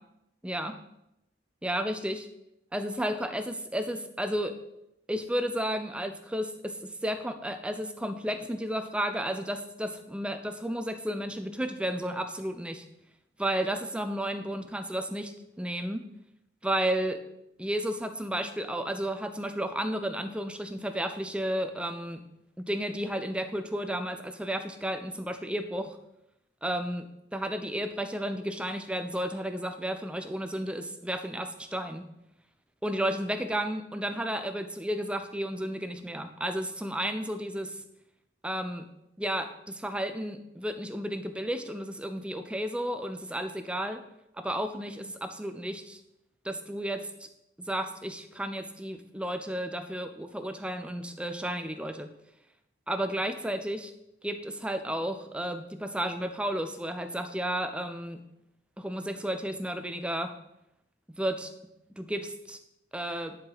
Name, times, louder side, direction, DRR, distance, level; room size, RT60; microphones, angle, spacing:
voice 1, 1.6-2.3 2.7-4.6 5.1-12.8 13.4-16.0 16.6-17.2 17.6-22.2 22.6-26.0 26.6-27.1 27.3-32.0 32.8-37.8 38.4-38.9 39.2-44.0 44.4-46.0 46.4-47.1 47.7-52.1 52.9-53.9 54.2-58.2 58.8-60.3 61.1-61.5 62.0-62.6 62.9-63.4, right 1 dB, 5° right, 7 dB, 0.5 m, -32 dB
9.9 x 4.8 x 4.0 m, 0.84 s
head